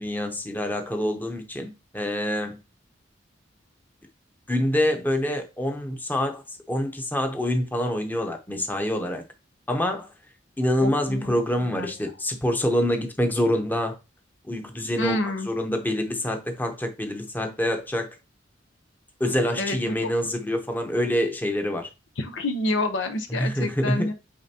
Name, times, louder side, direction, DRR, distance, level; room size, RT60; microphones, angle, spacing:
voice 1, 0.0-2.6 4.5-9.2 9.7-10.1 10.6-14.0 14.5-18.1 19.2-21.9 23.3-24.1, left 1 dB, 10° left, 0.9 m, -26 dB
voice 2, 10.8-11.4 11.6-11.9 15.0-15.5 19.6-20.1 22.2-24.1, left 2 dB, 80° left, 0.9 m, -28 dB
8.7 x 3.8 x 2.9 m
head